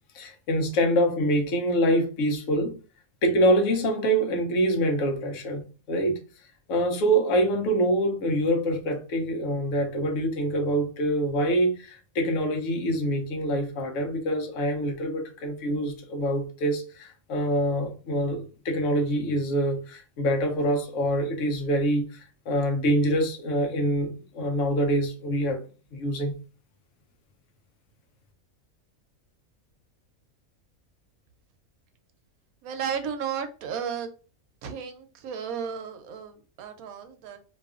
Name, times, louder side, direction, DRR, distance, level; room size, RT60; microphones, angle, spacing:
voice 1, 0.1-2.8 3.2-6.2 6.7-25.6 25.9-26.4, equal, 70° left, 1.0 m, -25 dB
voice 2, 32.6-34.1 34.6-37.4, right 7 dB, 90° right, 1.0 m, -33 dB
2.8 x 2.4 x 2.3 m
omnidirectional pair, 1.4 m